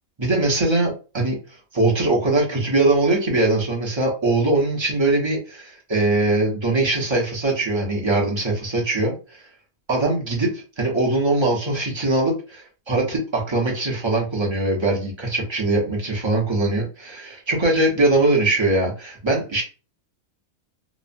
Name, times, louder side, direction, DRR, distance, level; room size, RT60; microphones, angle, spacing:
voice 1, 0.2-1.4 1.7-9.1 9.9-19.6, right 2 dB, 30° right, -2 dB, 0.6 m, -21 dB
3.0 x 2.0 x 2.5 m, 0.35 s
omnidirectional pair, 1.4 m